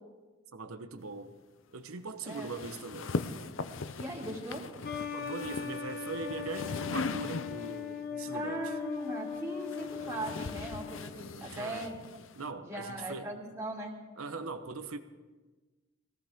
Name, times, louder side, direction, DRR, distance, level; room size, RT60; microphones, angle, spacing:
voice 1, 0.5-1.4 1.7-3.1 5.1-8.7 11.3-11.9 12.4-13.3 14.2-15.0, right 3 dB, 90° right, 1.1 m, -41 dB
sound 1, 2.3-7.9 8.9-12.5, left 4 dB, 65° left, 0.6 m, -40 dB
voice 2, 3.7-4.6 8.3-12.0 12.6-14.0, right 1 dB, 15° right, 2.7 m, -39 dB
sound 2, 4.8-11.1, left 6 dB, 50° left, 1.1 m, -39 dB
21.0 x 17.0 x 3.7 m
head